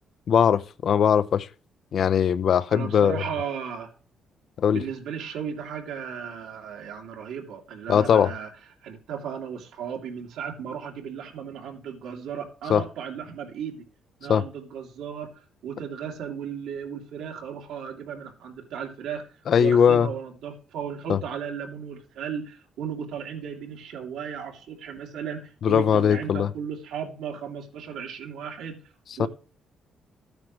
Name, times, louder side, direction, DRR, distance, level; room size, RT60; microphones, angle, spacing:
voice 1, 0.3-1.5 1.9-3.2 4.6-4.8 7.9-8.3 12.7-12.8 14.3-14.4 19.5-20.1 21.1-21.2 25.6-26.5 29.2-29.3, left 8 dB, 60° left, 0.6 m, -20 dB
voice 2, 2.7-3.9 4.7-8.5 8.8-13.9 14.2-15.3 15.6-19.3 19.6-28.8 29.2-29.3, right 7 dB, 85° right, 2.9 m, -35 dB
13.5 x 9.6 x 3.3 m
cardioid pair, 90°, 0 cm